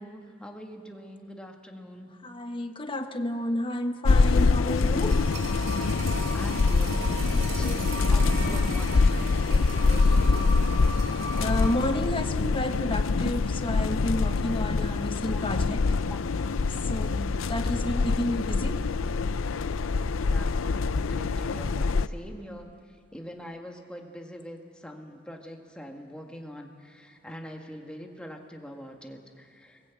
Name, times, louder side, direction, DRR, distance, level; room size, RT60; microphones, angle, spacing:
voice 1, 0.0-2.1 6.3-7.0 7.3-10.1 14.4-14.6 14.9-15.0 15.3-15.5 16.1-16.2 20.1-29.8, equal, 5° left, 2 dB, 1.9 m, -44 dB
voice 2, 2.2-5.2 11.4-15.8 16.8-18.8, left 1 dB, 25° left, 6 dB, 1.3 m, -31 dB
sound 1, 4.0-22.1, left 4 dB, 85° left, 0.6 m, -25 dB
sound 2, 4.4-11.9 12.2-12.3, right 1 dB, 80° right, 3.6 m, -36 dB
22.5 x 20.0 x 8.4 m, 2.3 s
head